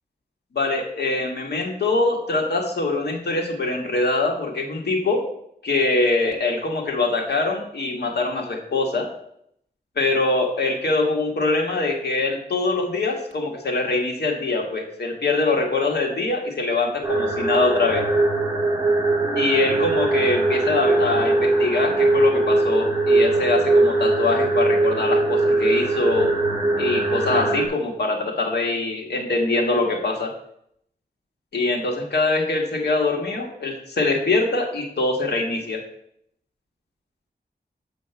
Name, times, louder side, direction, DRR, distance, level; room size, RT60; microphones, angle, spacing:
voice 1, 0.5-5.2 5.6-9.1 10.0-18.0 19.4-26.3 26.8-30.3 31.5-35.8, left 3 dB, 80° left, 1 dB, 1.6 m, -23 dB
sound 1, 17.0-27.7, right 2 dB, 15° right, 1.9 m, -21 dB
7.0 x 5.1 x 6.9 m, 0.72 s
wide cardioid pair, 125°, 17 cm